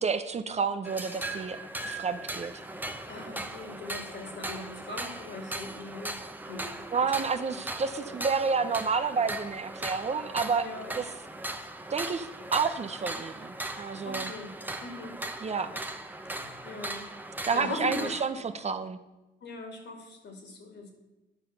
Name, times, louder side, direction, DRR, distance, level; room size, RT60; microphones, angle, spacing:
voice 1, 0.0-1.6 1.8-2.5 6.9-10.7 10.9-11.1 11.9-14.3 15.4-15.7 17.5-19.0, right 5 dB, 35° right, 9 dB, 0.7 m, -30 dB
sound 1, 0.9-18.3, right 2 dB, 10° right, 0.9 m, -38 dB
voice 2, 3.1-6.1 6.5-6.7 10.6-10.9 14.0-15.2 16.6-17.1 17.5-18.1 19.4-20.9, left 2 dB, 65° left, 4 dB, 2.6 m, -40 dB
11.0 x 5.8 x 6.7 m, 1.0 s
cardioid pair, 90°, 20 cm